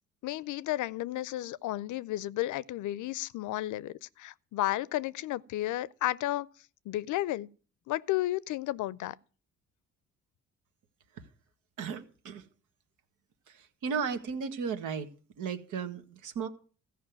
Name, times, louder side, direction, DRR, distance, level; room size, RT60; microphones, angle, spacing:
voice 1, 0.2-6.5 6.9-7.5 7.9-9.2, left 15 dB, 80° left, 0.6 m, -32 dB
voice 2, 11.8-12.4 13.8-15.1 15.4-16.5, right 6 dB, 85° right, 1.6 m, -34 dB
14.5 x 5.5 x 9.2 m
cardioid pair, 90°, 30 cm